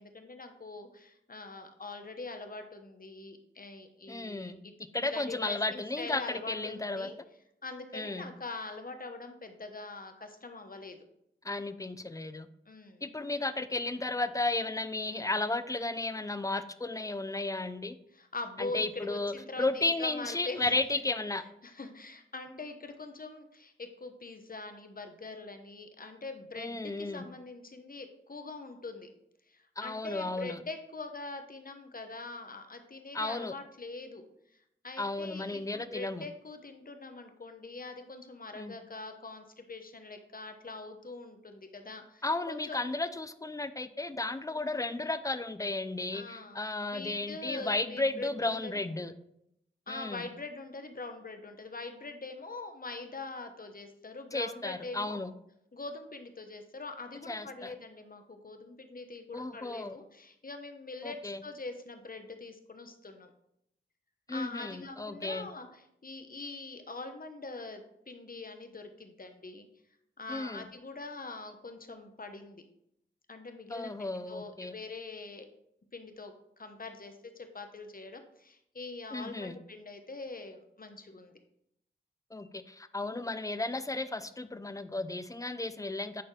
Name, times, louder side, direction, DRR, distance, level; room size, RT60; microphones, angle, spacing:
voice 1, 0.0-4.7 5.1-7.1 7.6-11.0 12.7-13.1 18.1-21.0 21.6-29.1 29.5-34.2 34.8-42.9 46.1-48.7 49.9-55.2 55.7-63.3 64.3-69.7 70.2-72.6 73.3-75.5 75.9-81.3, left 3 dB, 45° left, 6 dB, 1.0 m, -43 dB
voice 2, 4.1-4.6 4.9-7.1 7.9-8.3 11.4-12.5 13.0-18.0 18.6-21.4 26.6-27.2 29.8-30.6 33.1-33.6 35.0-36.2 38.6-38.7 42.2-49.1 49.9-50.3 54.3-55.3 57.3-57.7 59.3-60.0 61.0-61.4 64.3-65.5 70.3-70.6 73.7-74.7 79.1-79.5 82.3-86.2, left 2 dB, 15° left, 12 dB, 0.5 m, -34 dB
10.0 x 4.2 x 3.3 m, 0.78 s
cardioid pair, 40°, 20 cm